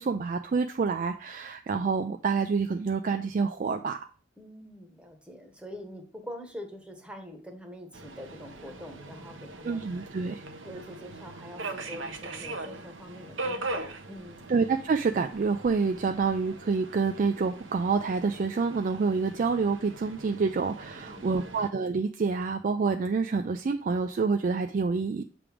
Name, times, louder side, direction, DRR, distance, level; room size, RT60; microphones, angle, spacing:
voice 1, 0.0-4.0 9.6-10.4 14.5-25.2, right 4 dB, 45° right, 6 dB, 0.3 m, -27 dB
voice 2, 4.4-9.8 10.6-14.5 20.9-21.4, equal, 5° right, 3 dB, 1.0 m, -44 dB
Subway metro underground, 7.9-21.7, right 2 dB, 75° right, 0.9 m, -41 dB
7.1 x 3.4 x 4.8 m, 0.42 s
head